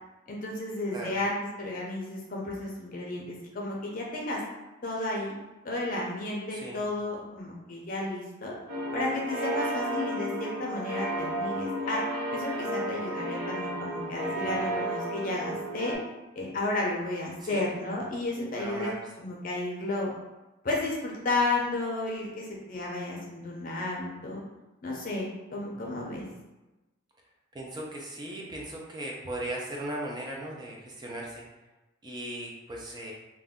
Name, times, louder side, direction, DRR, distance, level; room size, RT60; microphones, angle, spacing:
voice 1, 0.3-4.4 4.8-5.3 5.6-8.5 8.9-12.0 12.3-16.0 16.3-18.9 19.2-20.1 20.6-24.4 24.8-26.3, left 2 dB, 40° left, -3 dB, 0.5 m, -32 dB
voice 2, 6.5-6.8 14.3-14.6 17.5-17.6 17.9-18.0 18.5-18.9 25.8-26.2 27.5-31.5 32.0-33.1, right 1 dB, 20° right, -2 dB, 0.4 m, -38 dB
sound 1, 8.7-16.0, right 1 dB, 80° right, 1.0 m, -33 dB
2.5 x 2.2 x 3.5 m, 1.1 s
head